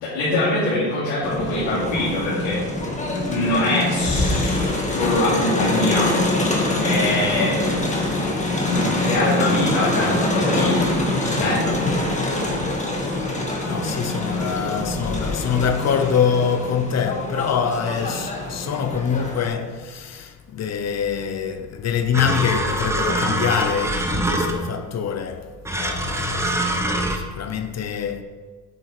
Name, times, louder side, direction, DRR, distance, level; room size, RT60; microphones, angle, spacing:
voice 1, 0.0-2.6 3.3-6.1 6.8-7.6 8.7-11.8, left 2 dB, 85° left, 3.0 m, -23 dB
Crowd, 1.2-19.5, left 2 dB, 15° left, 1.9 m, -24 dB
voice 2, 13.7-28.2, left 7 dB, 40° left, 0.9 m, -25 dB
sound 1, 22.1-24.8 25.6-27.2, right 1 dB, 5° right, 1.0 m, -24 dB
8.9 x 6.2 x 5.0 m
supercardioid pair, 95°, 40 cm